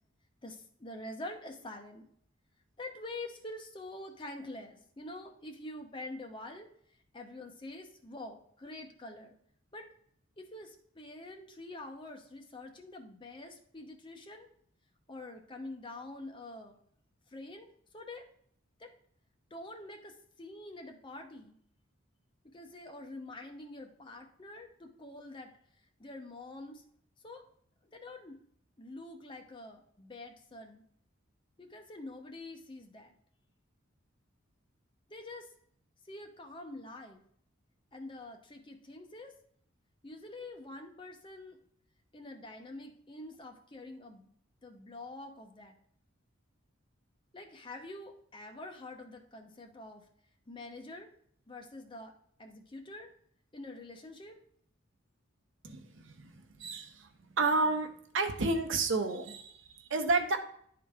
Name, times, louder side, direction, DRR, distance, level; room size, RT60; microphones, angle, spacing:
voice 1, 0.4-2.1 2.8-6.7 7.1-9.3 9.7-9.9 10.4-14.5 15.1-16.8 17.3-18.2 18.8-18.9 19.5-21.6 22.4-25.5 26.0-26.8 27.2-27.4 27.9-28.4 28.8-30.8 31.6-33.1 35.1-35.5 36.1-37.2 37.9-39.3 40.0-41.6 42.1-44.3 44.6-45.8 47.3-50.0 50.5-51.1 51.5-52.1 52.4-53.1 53.5-54.4, left 2 dB, 25° left, 3 dB, 0.8 m, -46 dB
voice 2, 55.6-57.1 57.4-57.9 58.1-60.4, right 3 dB, 65° right, 6 dB, 0.9 m, -31 dB
10.5 x 3.9 x 3.5 m, 0.64 s
head